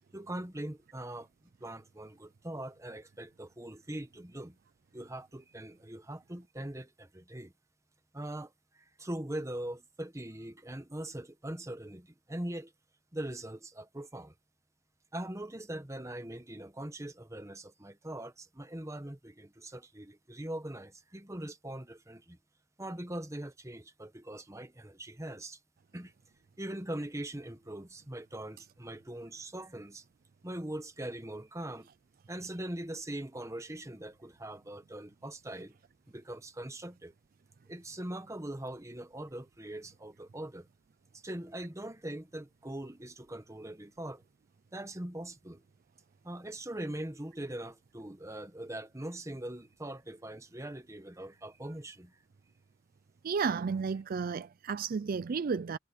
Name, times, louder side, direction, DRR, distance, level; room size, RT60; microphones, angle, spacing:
voice 1, 0.1-1.3 1.6-4.6 4.9-7.5 8.1-12.7 13.1-14.3 15.1-22.4 22.8-25.6 25.9-26.1 26.6-30.0 30.4-31.9 32.3-35.7 36.1-37.1 37.7-40.7 41.2-44.2 44.7-45.6 46.2-52.2, right 1 dB, 15° right, 1.3 m, -41 dB
voice 2, 53.2-55.8, right 5 dB, 50° right, 0.4 m, -32 dB
head